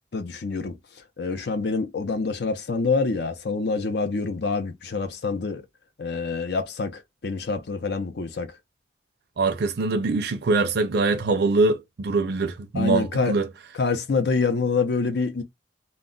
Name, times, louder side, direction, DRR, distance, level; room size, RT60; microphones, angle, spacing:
voice 1, 0.1-0.8 1.2-5.6 6.0-8.6 12.7-13.4 13.8-15.4, left 4 dB, 65° left, 0.6 m, -26 dB
voice 2, 9.4-13.5, right 3 dB, 60° right, 0.5 m, -23 dB
2.2 x 2.1 x 3.7 m
head